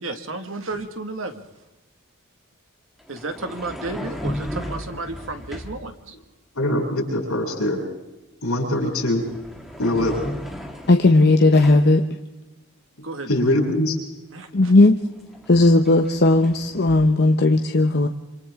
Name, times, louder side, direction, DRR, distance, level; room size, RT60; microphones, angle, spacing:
voice 1, 0.0-1.4 3.1-6.1 13.0-13.3 14.3-14.7, right 2 dB, 65° right, 6 dB, 1.9 m, -32 dB
sound 1, 0.7-0.9 3.0-5.9 8.5-8.8 9.1-12.0 14.4-14.5 14.8-17.1, equal, ahead, 1.9 m, -35 dB
voice 2, 6.6-7.8 8.4-9.2 9.8-10.1 13.3-14.0, left 1 dB, 80° left, 0 dB, 7.3 m, -22 dB
voice 3, 10.9-12.0 14.5-15.0 15.5-18.1, left 2 dB, 50° left, 5 dB, 0.9 m, -16 dB
27.5 x 26.5 x 3.7 m, 1.1 s
head